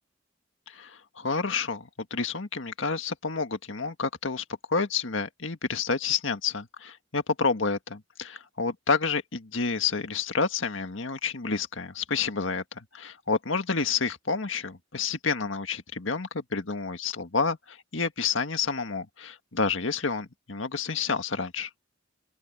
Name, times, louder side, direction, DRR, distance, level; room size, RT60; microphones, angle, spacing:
voice 1, 0.7-4.4 4.7-21.7, left 5 dB, 80° left, 1.7 m, -29 dB
open air
head